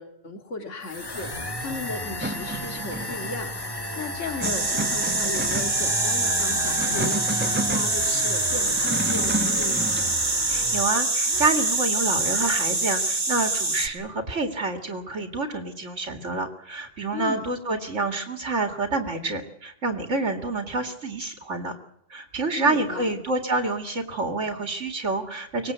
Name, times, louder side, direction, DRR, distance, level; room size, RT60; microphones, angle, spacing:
voice 1, 0.0-9.8 17.1-17.5 22.6-23.2, left 3 dB, 70° left, 6 dB, 2.6 m, -36 dB
sound 1, 0.8-11.8 12.1-12.6, left 1 dB, 20° left, 1.7 m, -34 dB
sound 2, 2.2-3.3 4.3-5.9 6.6-7.9 8.6-10.1, right 1 dB, 10° right, 1.3 m, -32 dB
sound 3, 4.4-13.9, right 2 dB, 35° right, 2.2 m, -25 dB
voice 2, 10.5-21.8 22.1-25.7, right 3 dB, 70° right, 6 dB, 2.5 m, -28 dB
24.0 x 19.5 x 8.1 m, 0.75 s
omnidirectional pair, 1.3 m